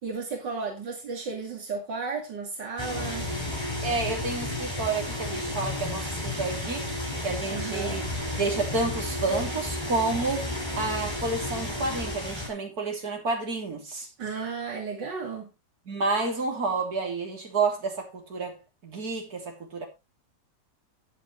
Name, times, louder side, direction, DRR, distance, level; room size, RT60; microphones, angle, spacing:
voice 1, 0.0-3.3 7.5-8.0 14.2-15.5, right 4 dB, 80° right, 3.0 m, -34 dB
sound 1, 2.8-12.5, left 1 dB, 15° left, 4.7 m, -32 dB
voice 2, 3.8-8.0 8.4-14.1 15.9-19.9, right 3 dB, 55° right, 3.8 m, -30 dB
13.5 x 9.3 x 3.3 m
omnidirectional pair, 1.9 m